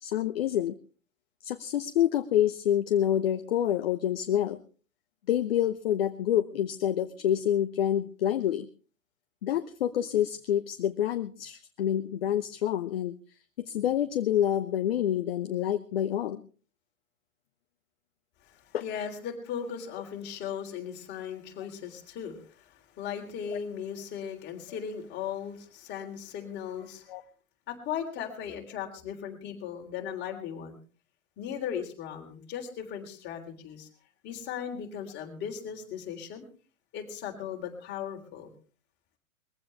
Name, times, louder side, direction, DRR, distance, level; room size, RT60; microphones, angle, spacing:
voice 1, 0.0-0.7 1.4-4.6 5.3-8.7 9.4-13.1 13.6-16.4 18.7-18.8 23.5-23.6 27.1-27.2, left 11 dB, 45° left, 10 dB, 0.9 m, -27 dB
voice 2, 18.4-27.1 27.7-30.8 31.4-33.9 34.2-36.5 36.9-38.5, left 8 dB, 25° left, 2 dB, 3.5 m, -37 dB
21.5 x 15.5 x 3.3 m, 0.38 s
figure-of-eight pair, 110°, 42 cm